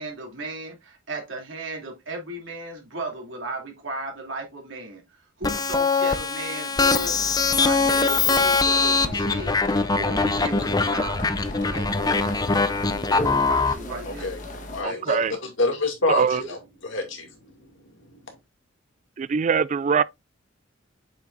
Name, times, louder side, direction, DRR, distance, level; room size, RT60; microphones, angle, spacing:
voice 1, 0.0-5.0 5.4-7.2 7.6-9.6 10.0-11.3 11.6-12.4 13.1-14.3, right 2 dB, 70° right, 2.9 m, -35 dB
sound 1, 5.4-13.7, left 4 dB, 20° left, 0.5 m, -22 dB
sound 2, 6.8-14.8, left 1 dB, 40° left, 1.4 m, -37 dB
voice 2, 14.0-14.4 14.7-17.3, left 2 dB, 70° left, 2.4 m, -27 dB
voice 3, 14.8-15.4 16.1-16.4 19.2-20.0, right 6 dB, 35° right, 0.3 m, -22 dB
7.3 x 5.9 x 2.6 m
head